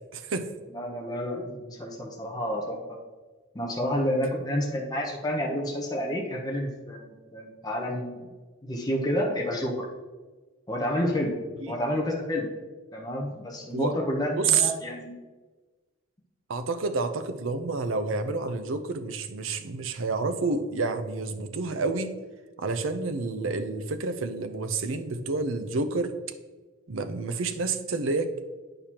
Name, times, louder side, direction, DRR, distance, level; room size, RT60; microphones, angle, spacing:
voice 1, 0.1-0.5 13.7-13.9 14.3-14.7 16.5-22.1 22.6-26.1 26.9-28.4, right 4 dB, 80° right, 9 dB, 0.6 m, -29 dB
voice 2, 0.7-3.0 3.5-8.3 8.6-9.9 10.7-11.4 11.7-12.5 12.9-15.2, equal, 20° left, 0 dB, 0.8 m, -29 dB
8.7 x 6.6 x 2.9 m, 1.3 s
head